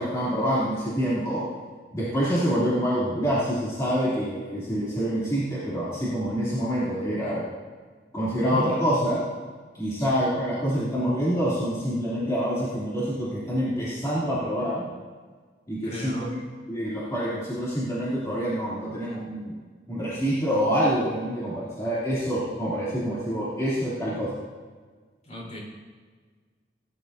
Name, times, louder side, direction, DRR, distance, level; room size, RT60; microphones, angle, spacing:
voice 1, 0.0-1.4 1.9-7.4 8.1-9.2 9.7-14.8 15.7-16.4 16.7-19.5 19.9-24.4, equal, 20° left, -10 dB, 2.8 m, -26 dB
voice 2, 8.4-8.7 10.0-10.2 15.8-16.4 25.2-25.6, equal, 40° left, -4 dB, 3.9 m, -35 dB
18.0 x 10.5 x 2.7 m, 1.5 s
head